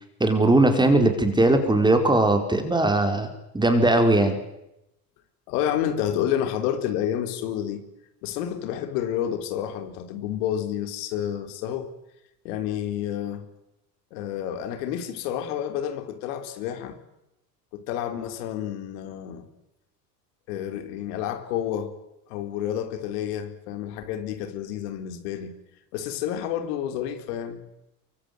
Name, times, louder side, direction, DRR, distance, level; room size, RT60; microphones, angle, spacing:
voice 1, 0.2-4.4, right 2 dB, 10° right, 4.7 m, -20 dB
voice 2, 5.5-7.8 8.2-11.9 12.4-13.5 14.1-17.0 17.7-19.5 20.5-21.9 22.3-25.5 25.9-27.6, left 10 dB, 75° left, 4.1 m, -29 dB
24.0 x 24.0 x 9.6 m
supercardioid pair, 115°, 47 cm